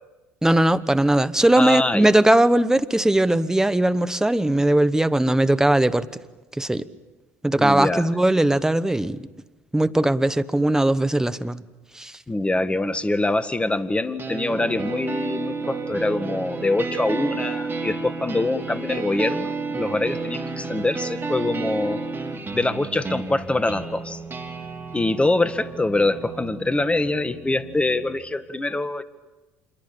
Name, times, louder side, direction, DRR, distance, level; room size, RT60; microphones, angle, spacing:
voice 1, 0.4-6.1 6.6-6.9 7.4-9.2 9.7-11.6 11.9-12.1, right 1 dB, 5° right, 1.1 m, -19 dB
voice 2, 1.6-2.1 7.6-8.1 12.3-22.0 22.5-24.2 24.9-29.0, left 2 dB, 15° left, 1.8 m, -24 dB
sound 1, 14.2-28.2, right 3 dB, 25° right, 3.6 m, -32 dB
27.0 x 22.5 x 8.8 m
hypercardioid pair, 60°, 8 cm